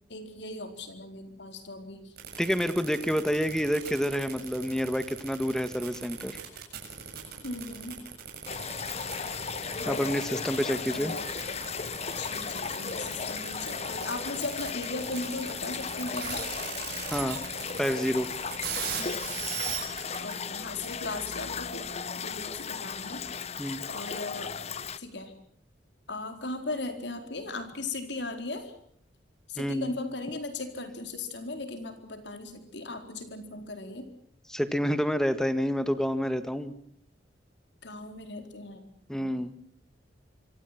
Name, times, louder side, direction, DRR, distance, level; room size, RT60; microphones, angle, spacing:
voice 1, 0.1-2.1 7.4-8.0 9.8-10.2 10.9-11.3 12.2-16.5 18.9-19.2 20.2-24.5 25.0-25.3 26.1-28.7 29.5-34.1 37.8-38.8 39.2-39.3, left 2 dB, 65° left, 7 dB, 4.3 m, -38 dB
sound 1, 2.2-20.3, right 8 dB, 60° right, 7.2 m, -39 dB
voice 2, 2.4-6.4 9.8-11.1 17.1-17.4 17.8-18.3 23.6-23.9 29.6-29.9 34.5-36.7 39.1-39.6, equal, 5° left, 11 dB, 1.7 m, -28 dB
sound 2, 8.5-25.0, left 6 dB, 35° left, 0.9 m, -36 dB
25.5 x 25.5 x 6.0 m, 0.64 s
head